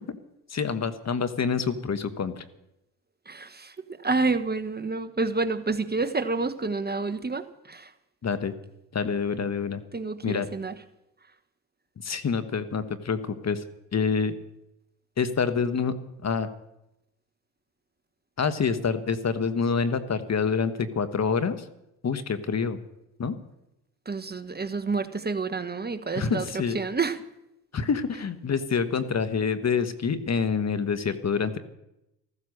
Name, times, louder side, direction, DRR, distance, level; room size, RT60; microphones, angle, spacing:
voice 1, 0.5-2.4 8.2-8.5 8.9-9.8 10.2-10.5 12.0-13.6 13.9-14.3 15.2-15.9 16.2-16.5 18.4-21.7 22.0-22.8 23.2-23.4 26.1-26.8 27.7-31.6, left 5 dB, 35° left, 11 dB, 1.5 m, -27 dB
voice 2, 3.3-3.7 4.0-7.9 9.9-10.7 24.1-26.4 26.7-27.2, right 3 dB, 20° right, 9 dB, 1.3 m, -28 dB
15.0 x 14.5 x 6.6 m, 0.87 s
supercardioid pair, 70°, 43 cm